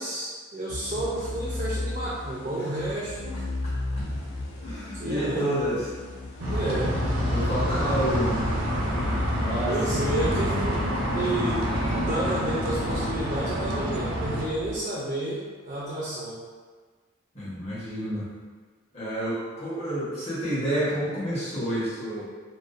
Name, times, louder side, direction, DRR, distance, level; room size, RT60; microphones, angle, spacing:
voice 1, 0.0-3.4 4.9-5.6 6.5-7.0 9.7-10.8 11.1-11.7 12.1-16.4, right 1 dB, 35° right, -7 dB, 0.3 m, -30 dB
sound 1, 0.7-12.6, left 2 dB, 80° left, 0.4 m, -34 dB
voice 2, 3.6-4.0 4.6-5.9 6.5-6.6 7.3-8.4 9.4-10.1 17.3-18.3 18.9-22.2, equal, 30° left, -10 dB, 0.9 m, -29 dB
sound 2, 6.4-14.4, equal, 85° right, 0.5 m, -28 dB
sound 3, 7.0-14.8, left 1 dB, 65° left, 1.1 m, -36 dB
2.5 x 2.0 x 2.4 m, 1.5 s
head